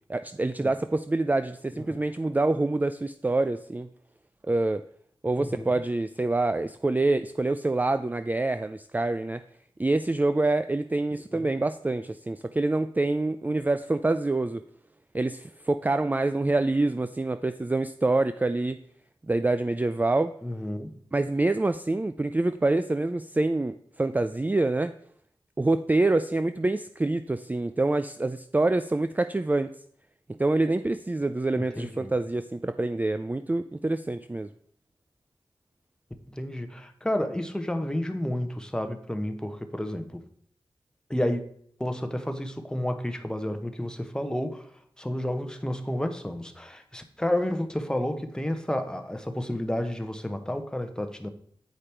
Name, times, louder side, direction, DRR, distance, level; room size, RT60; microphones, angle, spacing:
voice 1, 0.1-3.9 4.5-4.8 5.2-9.4 9.8-14.6 15.1-18.8 19.3-20.3 21.1-24.9 25.6-29.7 30.4-34.5, right 2 dB, 15° right, 11 dB, 0.3 m, -26 dB
voice 2, 20.4-21.0 31.6-32.1 36.3-40.2 41.1-41.4 41.8-44.7 45.0-51.3, left 1 dB, 10° left, 6 dB, 0.9 m, -31 dB
8.3 x 5.0 x 4.4 m, 0.62 s
cardioid pair, 55°, 10 cm